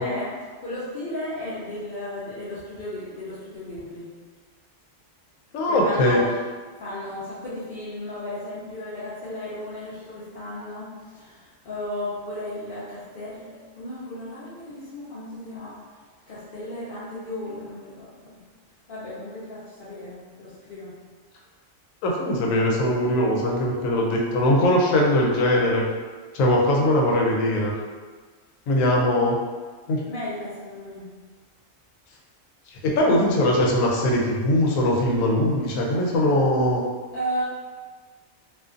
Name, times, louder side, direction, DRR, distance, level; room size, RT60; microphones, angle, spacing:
voice 1, 0.0-4.1 5.7-6.3 6.8-15.8 16.3-18.4 18.9-20.9 28.8-29.2 30.1-31.1 37.1-37.4, left 1 dB, 50° left, -12 dB, 0.7 m, -34 dB
voice 2, 5.5-6.2 22.0-25.8 26.3-27.7 28.7-29.3 29.9-30.0 32.8-36.8, left 1 dB, 80° left, -1 dB, 1.0 m, -21 dB
2.5 x 2.5 x 2.4 m, 1.5 s
omnidirectional pair, 1.4 m